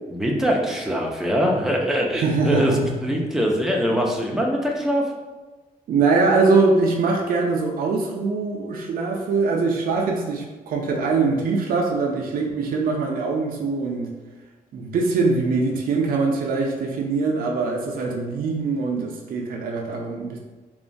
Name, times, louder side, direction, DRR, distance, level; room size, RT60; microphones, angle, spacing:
voice 1, 0.1-2.7 3.0-5.0, equal, 5° right, -1 dB, 0.4 m, -22 dB
voice 2, 2.2-2.8 5.9-14.1 14.7-20.4, right 4 dB, 65° right, 0 dB, 0.4 m, -22 dB
2.9 x 2.1 x 2.5 m, 1.2 s
wide cardioid pair, 135°, 16 cm